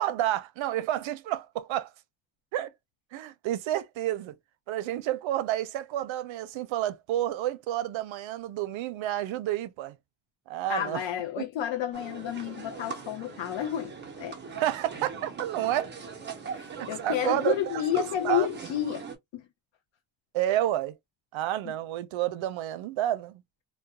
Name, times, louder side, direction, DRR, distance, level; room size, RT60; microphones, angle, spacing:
voice 1, 0.0-1.9 2.5-2.7 3.1-4.4 4.7-10.0 10.5-11.0 11.4-11.5 14.6-15.9 16.8-17.5 17.9-18.5 20.3-20.9 21.3-23.4, right 13 dB, 80° right, 0.5 m, -30 dB
voice 2, 10.7-14.4 16.5-19.0 19.3-19.4, left 11 dB, 75° left, 0.6 m, -31 dB
sound 1, 11.9-19.2, right 5 dB, 25° right, 0.5 m, -41 dB
2.3 x 2.1 x 2.7 m
wide cardioid pair, 170°, 45 cm